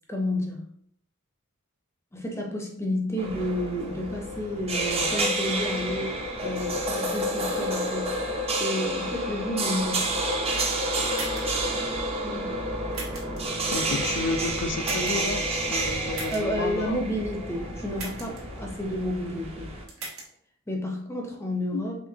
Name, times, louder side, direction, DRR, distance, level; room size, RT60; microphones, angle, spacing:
voice 1, 0.1-0.6 2.1-10.1 11.6-11.8 12.2-12.6 16.3-19.7 20.7-22.0, left 1 dB, 10° left, 1 dB, 0.6 m, -31 dB
sound 1, 3.2-19.9, right 1 dB, 25° right, 0.6 m, -29 dB
sound 2, 9.8-16.1, equal, 90° right, 1.7 m, -42 dB
sound 3, 11.1-11.6 12.9-13.4 14.8-15.3 16.1-16.4 18.0-18.4 19.9-20.3, right 3 dB, 70° right, 1.4 m, -37 dB
voice 2, 13.7-17.0 21.7-21.8, left 3 dB, 55° left, 7 dB, 0.4 m, -31 dB
5.1 x 3.4 x 2.7 m, 0.67 s
head